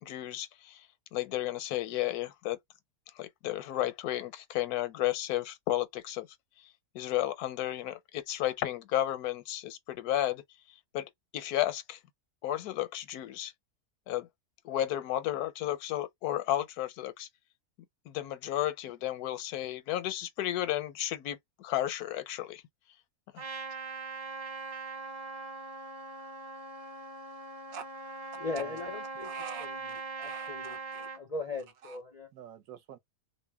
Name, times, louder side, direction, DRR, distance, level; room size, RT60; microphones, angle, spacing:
voice 1, 0.0-2.6 3.2-6.3 6.6-10.4 10.9-12.0 12.4-13.5 14.1-14.3 14.6-17.3 18.1-22.6 23.3-23.4, left 13 dB, 80° left, 1.1 m, -33 dB
Trumpet, 23.4-31.2, right 3 dB, 45° right, 1.1 m, -41 dB
voice 2, 28.4-29.3 29.6-32.3, left 3 dB, 55° left, 0.4 m, -39 dB
voice 3, 29.2-29.7 30.2-31.1 31.8-32.0 32.3-33.0, right 7 dB, 70° right, 1.0 m, -45 dB
2.6 x 2.0 x 3.3 m
omnidirectional pair, 1.6 m